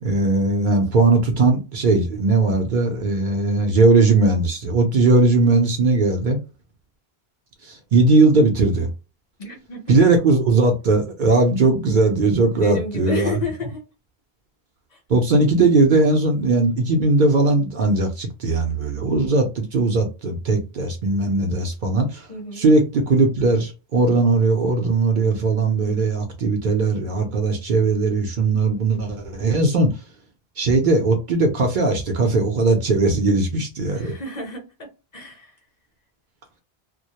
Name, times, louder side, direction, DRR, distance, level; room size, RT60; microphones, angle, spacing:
voice 1, 0.0-6.4 7.6-8.9 9.9-13.3 15.1-22.3 22.6-30.0 30.6-34.1, right 3 dB, 60° right, 0.6 m, -19 dB
voice 2, 9.4-10.0 12.5-13.8 14.9-15.0 22.3-22.6 34.0-34.9 35.1-35.5, left 3 dB, 45° left, 0.7 m, -31 dB
2.1 x 2.0 x 2.8 m
omnidirectional pair, 1.0 m